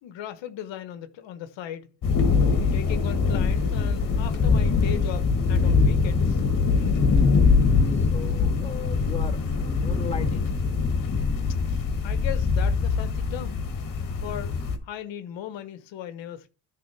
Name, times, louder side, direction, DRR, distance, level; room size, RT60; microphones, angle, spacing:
voice 1, 0.0-1.9 2.7-6.4 12.0-13.6 14.2-14.6 14.9-16.5, left 10 dB, 70° left, 1.1 m, -37 dB
sound 1, 2.0-14.8, left 4 dB, 45° left, 1.7 m, -23 dB
voice 2, 7.9-10.5, left 6 dB, 15° left, 1.5 m, -37 dB
10.0 x 3.8 x 5.8 m
cardioid pair, 130°, 46 cm